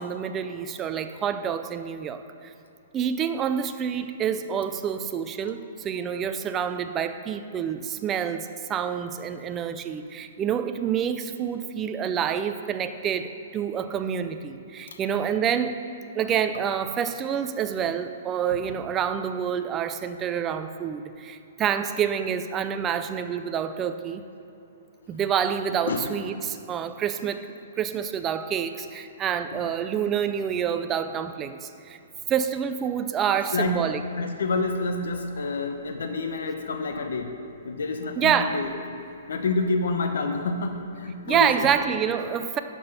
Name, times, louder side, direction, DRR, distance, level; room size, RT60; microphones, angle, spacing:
voice 1, 0.0-2.2 2.9-15.8 16.2-24.2 25.1-27.5 27.8-32.0 32.3-34.0 38.2-38.6 41.3-42.6, right 8 dB, 15° right, 9 dB, 0.4 m, -27 dB
voice 2, 33.5-33.8 34.2-37.3 37.6-38.7 39.3-41.7, left 3 dB, 85° left, 5 dB, 0.8 m, -28 dB
10.5 x 6.0 x 5.4 m, 2.8 s
hypercardioid pair, 160°, 0 cm